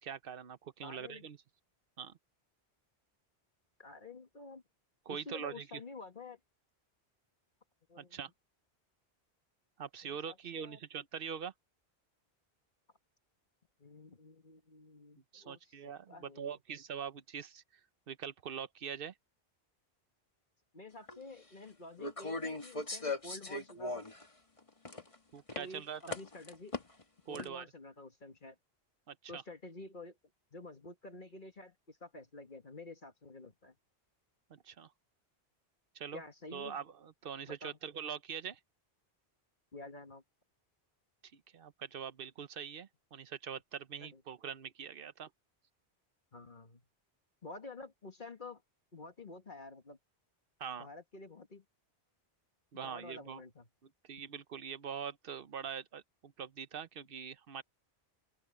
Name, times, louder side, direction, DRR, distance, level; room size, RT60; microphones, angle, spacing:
voice 1, 0.0-1.4 2.0-2.2 5.1-5.8 8.0-8.3 9.8-11.5 15.3-17.6 18.1-19.1 25.3-26.0 27.3-27.7 29.1-29.4 34.5-34.9 35.9-36.2 36.5-38.6 41.3-45.3 50.6-50.9 52.7-53.4 53.8-57.6, right 7 dB, 60° right, 1.0 m, -43 dB
voice 2, 0.8-1.3 3.8-4.6 5.1-6.4 7.9-8.2 10.0-10.8 13.8-16.6 20.7-24.0 25.6-26.8 27.3-28.6 29.3-30.2 30.5-33.8 36.1-36.8 37.5-37.8 39.7-40.2 44.0-44.2 46.3-46.8 47.4-48.6 48.9-50.0 50.8-51.6 52.8-53.7, left 2 dB, 50° left, 1.9 m, -50 dB
sound 1, 21.1-21.2 22.0-24.2 24.6-25.1 25.5-25.6 26.1-27.0 27.3-27.4, left 2 dB, 30° left, 1.7 m, -39 dB
open air
omnidirectional pair, 1.1 m